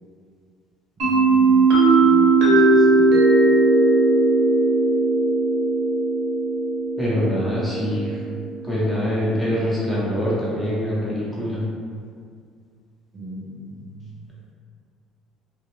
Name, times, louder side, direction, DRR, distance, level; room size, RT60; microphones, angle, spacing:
voice 1, 1.0-3.2 13.1-14.2, equal, 40° right, -5 dB, 0.5 m, -37 dB
sound 1, 1.0-8.6, right 3 dB, 70° right, 0.8 m, -18 dB
voice 2, 7.0-8.2 8.6-11.6, equal, 5° left, -8 dB, 0.9 m, -24 dB
2.3 x 2.1 x 3.1 m, 2.2 s
cardioid pair, 105°, 0 cm